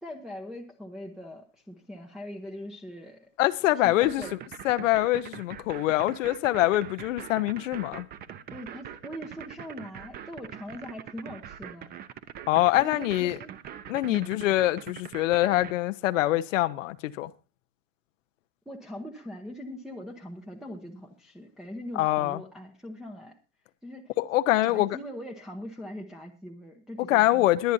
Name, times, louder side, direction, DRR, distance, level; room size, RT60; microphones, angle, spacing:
voice 1, 0.0-3.3 3.7-4.3 8.5-11.9 12.8-13.5 14.1-14.5 18.7-23.4 23.8-24.2 24.6-27.5, equal, ahead, 0.9 m, -41 dB
voice 2, 3.4-4.2 4.6-8.1 12.5-13.4 13.9-17.3 22.0-22.4 24.2-24.9 27.1-27.7, left 16 dB, 80° left, 0.9 m, -24 dB
sound 1, 3.8-15.7, right 9 dB, 25° right, 0.8 m, -42 dB
22.0 x 9.2 x 2.7 m
supercardioid pair, 150°, 38 cm